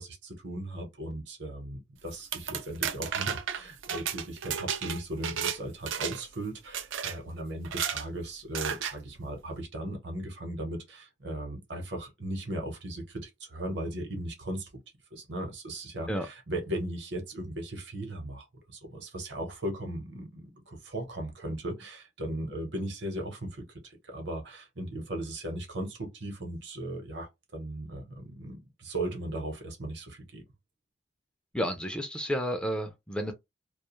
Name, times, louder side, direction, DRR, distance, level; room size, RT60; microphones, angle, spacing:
voice 1, 0.0-14.7 15.1-18.5 18.7-30.4, right 1 dB, 65° right, 0.9 m, -37 dB
sound 1, 2.1-5.6 5.9-6.3 6.7-7.2 7.6-8.1 8.5-9.0, right 8 dB, 80° right, 0.4 m, -33 dB
voice 2, 31.5-33.3, equal, 5° left, 0.3 m, -31 dB
2.3 x 2.3 x 3.0 m
head